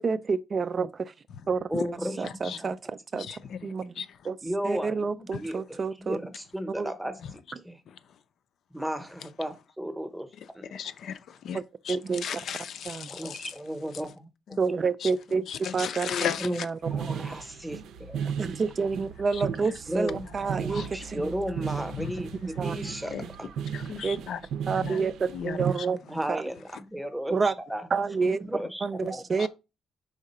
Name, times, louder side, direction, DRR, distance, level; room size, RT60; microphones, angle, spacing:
voice 1, 0.0-1.1 1.5-1.7 2.2-2.8 3.1-3.3 3.6-3.9 4.3-4.4 4.6-6.2 6.8-6.9 11.5-11.6 11.9-12.3 12.9-13.1 14.6-15.4 15.7-16.1 16.6-16.7 18.4-21.3 22.6-22.7 24.0-24.2 24.7-26.0 26.3-26.4 27.3-27.5 27.9-28.5 28.8-29.5, right 5 dB, 30° right, 0.3 m, -28 dB
voice 2, 1.7-2.7 3.4-3.6 4.4-7.8 8.7-10.3 10.5-10.7 13.1-14.3 16.4-16.6 16.9-18.4 19.9-23.5 26.0-27.9 28.4-29.5, equal, 5° right, 0.8 m, -35 dB
voice 3, 2.2-2.6 3.1-4.3 5.3-5.5 7.9-8.2 10.3-13.6 13.9-14.0 14.5-14.6 15.0-15.1 15.5-16.7 19.3-19.7 20.1-20.3 20.7-20.9 21.9-22.4 23.1-23.2 23.7-24.4 24.7-25.1 25.3-26.1 29.4-29.5, left 8 dB, 60° left, 0.5 m, -37 dB
sound 1, 16.8-25.7, right 7 dB, 75° right, 0.6 m, -35 dB
4.8 x 3.7 x 5.4 m
cardioid pair, 150°, 0 cm